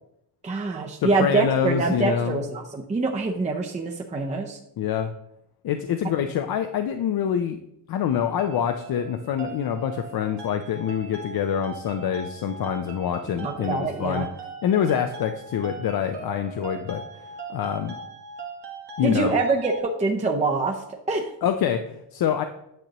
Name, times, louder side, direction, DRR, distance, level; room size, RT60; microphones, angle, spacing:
voice 1, 0.4-4.6 13.4-14.3 19.0-20.8 21.1-21.3, right 3 dB, 15° right, 1 dB, 0.6 m, -25 dB
voice 2, 1.0-2.4 4.8-5.1 5.6-7.6 7.9-14.3 14.6-17.0 17.5-17.9 19.0-19.4 21.4-22.4, left 8 dB, 60° left, 7 dB, 0.5 m, -26 dB
sound 1, 8.1-19.8, right 4 dB, 70° right, 1.3 m, -40 dB
9.2 x 6.6 x 2.9 m, 0.82 s
wide cardioid pair, 150°, 42 cm